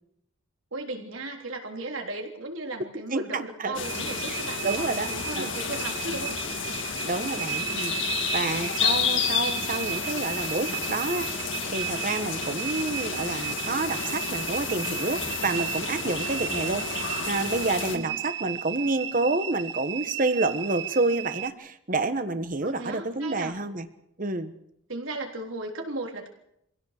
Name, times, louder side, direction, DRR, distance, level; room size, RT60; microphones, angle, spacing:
voice 1, 0.7-6.4 8.8-9.2 17.9-18.2 22.6-23.6 24.9-26.3, right 2 dB, 85° right, 2 dB, 3.4 m, -36 dB
voice 2, 3.1-3.8 4.3-4.4 4.6-5.1 5.4-5.5 7.0-23.9 24.2-24.5, right 3 dB, 40° right, 10 dB, 1.3 m, -29 dB
sound 1, 3.7-18.0, left 6 dB, 65° left, 2.4 m, -31 dB
sound 2, 3.8-21.5, right 11 dB, 60° right, 1.0 m, -35 dB
24.5 x 16.5 x 6.6 m, 0.77 s
head